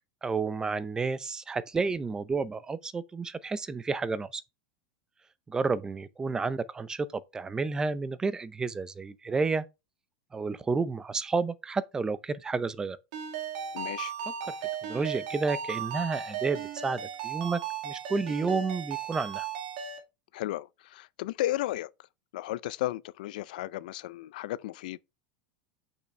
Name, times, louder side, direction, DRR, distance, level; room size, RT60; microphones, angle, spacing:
voice 1, 0.2-4.4 5.5-9.7 10.3-13.0 14.8-19.5, right 4 dB, 15° right, 0.5 m, -31 dB
Ringtone, 13.1-20.0, right 7 dB, 70° right, 2.0 m, -36 dB
voice 2, 13.7-14.1 20.3-21.9 22.3-25.0, left 15 dB, 75° left, 0.4 m, -34 dB
6.5 x 5.8 x 3.2 m
supercardioid pair, 130°, 5 cm